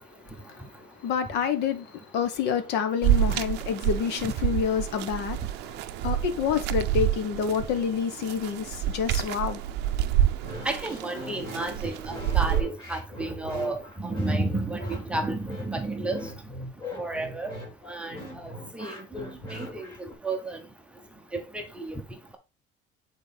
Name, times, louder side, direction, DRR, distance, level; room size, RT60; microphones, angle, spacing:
voice 1, 1.0-5.4 6.0-9.6, left 7 dB, 60° left, 1.1 m, -28 dB
sound 1, 3.0-12.6, right 12 dB, 60° right, 0.5 m, -28 dB
sound 2, 10.4-20.1, left 1 dB, 25° left, 2.4 m, -40 dB
voice 2, 10.6-16.3 17.0-17.5 17.9-20.6 21.3-22.0, right 2 dB, 5° right, 0.8 m, -32 dB
8.7 x 4.3 x 3.4 m
cardioid pair, 175°, 19 cm